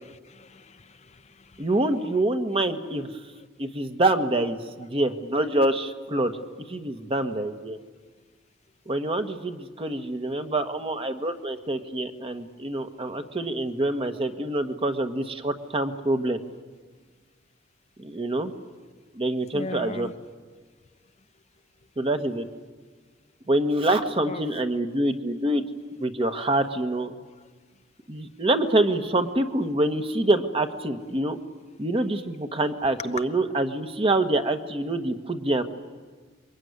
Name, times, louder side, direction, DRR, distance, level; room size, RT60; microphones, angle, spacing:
voice 1, 0.2-1.7 19.4-20.1 24.2-24.5 27.4-27.5, left 2 dB, 35° left, 9 dB, 0.9 m, -40 dB
voice 2, 1.6-3.1 3.6-6.4 6.7-7.8 8.9-16.4 18.0-18.5 19.1-20.1 22.0-22.4 23.5-25.6 26.0-27.1 28.1-31.4 31.8-35.6, right 1 dB, 30° right, 7 dB, 1.4 m, -26 dB
27.0 x 23.0 x 9.6 m, 1.5 s
head